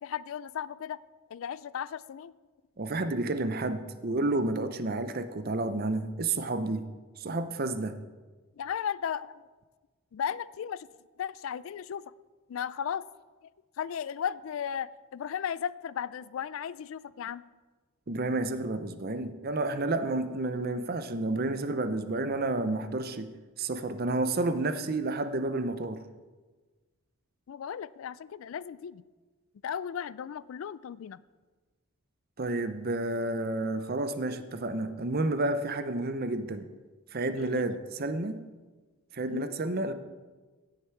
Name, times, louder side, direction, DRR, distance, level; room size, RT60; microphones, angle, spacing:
voice 1, 0.0-1.0 1.3-2.3 8.6-9.4 10.1-10.9 11.2-12.1 12.5-13.0 13.8-17.4 27.5-29.0 29.6-31.2 37.4-37.7 39.3-39.6, left 8 dB, 70° left, 19 dB, 0.3 m, -35 dB
voice 2, 2.8-6.9 7.2-7.9 18.1-26.0 32.4-36.7 37.1-38.4 39.1-39.9, right 2 dB, 45° right, 10 dB, 0.7 m, -30 dB
16.5 x 6.7 x 4.6 m, 1.3 s
head